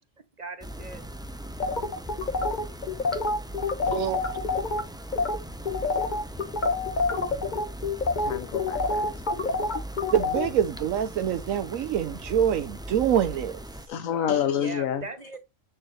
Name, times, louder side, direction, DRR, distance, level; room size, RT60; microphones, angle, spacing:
voice 1, 0.4-1.0 14.0-15.4, right 3 dB, 40° right, 0.8 m, -39 dB
sound 1, 0.6-13.9, right 1 dB, 5° right, 0.4 m, -39 dB
sound 2, 1.6-4.8 5.1-5.4 5.7-10.5, left 3 dB, 35° left, 1.3 m, -27 dB
voice 2, 3.9-4.2 10.1-13.6, right 9 dB, 90° right, 1.1 m, -25 dB
voice 3, 8.2-9.5 13.9-15.0, left 9 dB, 90° left, 1.1 m, -29 dB
9.6 x 4.7 x 3.1 m
omnidirectional pair, 1.4 m